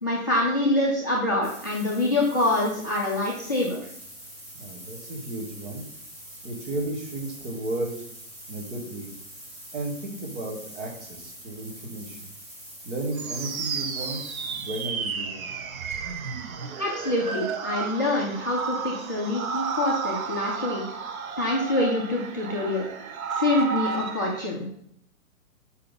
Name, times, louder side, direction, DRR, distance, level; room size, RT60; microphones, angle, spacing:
voice 1, 0.0-3.8 16.8-20.8 21.4-22.9 23.4-24.7, left 2 dB, 15° left, -4 dB, 0.3 m, -25 dB
sound 1, 1.4-14.9, right 1 dB, 20° right, 1.4 m, -45 dB
voice 2, 4.5-5.9 6.4-8.0 8.5-9.1 9.7-12.3 12.8-15.5, right 2 dB, 55° right, 0 dB, 2.0 m, -34 dB
sound 2, 13.1-24.4, right 5 dB, 75° right, 1.0 m, -32 dB
5.4 x 4.2 x 5.4 m, 0.69 s
hypercardioid pair, 150°, 42 cm